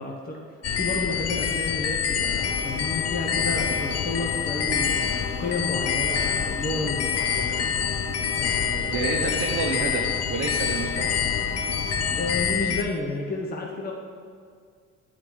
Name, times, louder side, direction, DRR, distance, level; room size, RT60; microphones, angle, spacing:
voice 1, 0.0-7.6 8.4-9.0 12.2-13.9, left 2 dB, 30° left, -1 dB, 0.9 m, -31 dB
sound 1, 0.6-12.8, left 8 dB, 55° left, 0.5 m, -26 dB
sound 2, 2.4-12.4, left 2 dB, 80° left, 1.0 m, -37 dB
voice 2, 8.9-11.3, right 4 dB, 45° right, -1 dB, 0.8 m, -29 dB
8.1 x 4.1 x 4.6 m, 2.1 s
cardioid pair, 90°, 30 cm